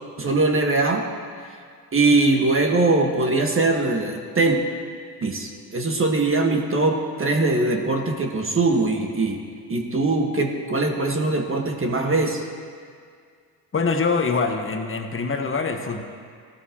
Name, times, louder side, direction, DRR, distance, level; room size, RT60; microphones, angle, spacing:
voice 1, 0.2-1.0 1.9-4.6 5.2-9.4 9.7-12.4, right 2 dB, 25° right, 2 dB, 1.5 m, -21 dB
voice 2, 13.7-16.0, left 4 dB, 25° left, 4 dB, 1.4 m, -24 dB
16.0 x 12.5 x 2.9 m, 2.1 s
hypercardioid pair, 70°, 49 cm